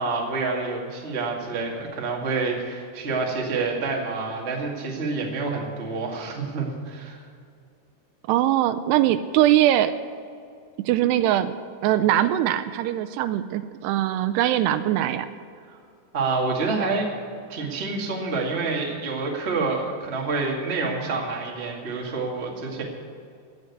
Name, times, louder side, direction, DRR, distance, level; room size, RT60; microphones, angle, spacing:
voice 1, 0.0-7.2 15.7-15.8 16.1-17.1 17.5-22.8, right 3 dB, 40° right, -1 dB, 0.9 m, -28 dB
voice 2, 8.3-9.9 10.9-11.6 11.8-15.3, right 13 dB, 85° right, 10 dB, 2.6 m, -21 dB
17.0 x 6.6 x 9.5 m, 2.3 s
omnidirectional pair, 4.9 m